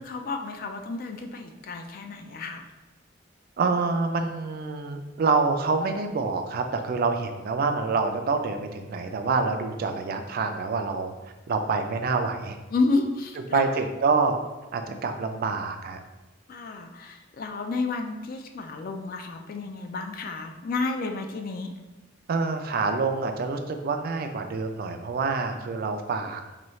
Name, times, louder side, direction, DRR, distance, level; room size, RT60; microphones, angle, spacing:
voice 1, 0.0-2.6 12.7-13.7 16.5-21.7, left 3 dB, 45° left, 5 dB, 0.3 m, -31 dB
voice 2, 3.6-11.1 11.5-12.6 13.5-14.4 14.7-16.0 22.3-26.4, right 4 dB, 50° right, 6 dB, 0.3 m, -26 dB
4.0 x 2.3 x 3.1 m, 1.1 s
head